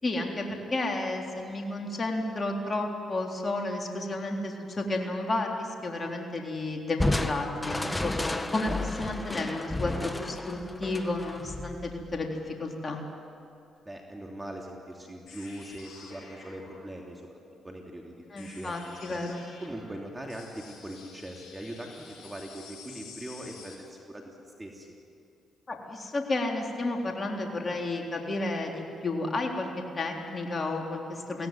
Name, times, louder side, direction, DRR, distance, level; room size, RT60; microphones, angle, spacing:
voice 1, 0.0-13.0 18.3-19.4 25.7-29.7 29.9-31.5, left 2 dB, 40° left, 1 dB, 3.7 m, -32 dB
Crushing, 7.0-12.4, left 2 dB, 20° left, 1.5 m, -32 dB
voice 2, 13.8-17.2 17.6-19.2 19.6-24.9, right 1 dB, 15° right, 0 dB, 3.1 m, -41 dB
sound 1, 15.3-23.8, left 5 dB, 70° left, 7.4 m, -50 dB
23.0 x 17.5 x 9.3 m, 2.5 s
supercardioid pair, 55°, 0 cm